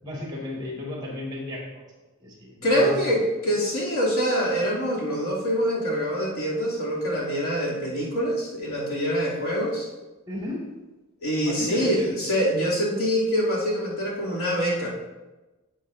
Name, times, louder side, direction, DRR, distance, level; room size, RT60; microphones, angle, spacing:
voice 1, 0.0-1.8 2.2-3.1 10.3-10.6 11.4-12.1, left 1 dB, 20° right, -3 dB, 2.1 m, -34 dB
voice 2, 2.6-9.9 11.2-14.9, equal, 80° left, -7 dB, 3.1 m, -25 dB
11.0 x 7.6 x 2.7 m, 1.1 s
head